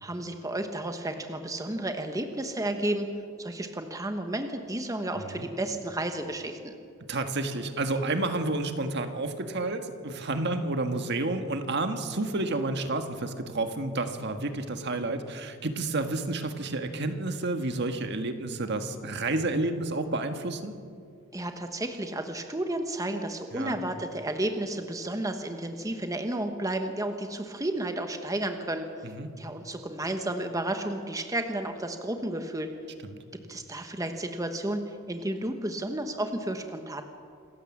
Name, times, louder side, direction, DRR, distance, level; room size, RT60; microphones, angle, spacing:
voice 1, 0.0-3.1 3.4-6.8 21.3-28.8 29.4-32.7 33.5-37.0, right 1 dB, 15° right, 6 dB, 1.2 m, -32 dB
voice 2, 5.1-5.5 7.1-20.7 23.5-23.8 29.0-29.3 33.0-33.2, right 2 dB, 55° right, 7 dB, 1.6 m, -30 dB
27.0 x 15.0 x 7.3 m, 2.2 s
head